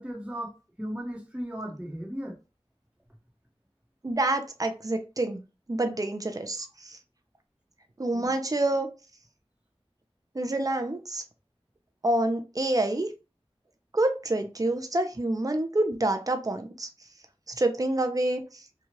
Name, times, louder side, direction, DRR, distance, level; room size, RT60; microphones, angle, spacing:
voice 1, 0.0-2.4 8.1-8.4, equal, 10° right, 1.0 m, -36 dB
voice 2, 4.0-5.4 5.7-7.0 8.0-8.9 10.3-11.2 12.0-13.1 13.9-16.9 17.6-18.4, right 1 dB, 35° right, 0.5 m, -27 dB
2.9 x 2.3 x 3.0 m
wide cardioid pair, 40°, 11 cm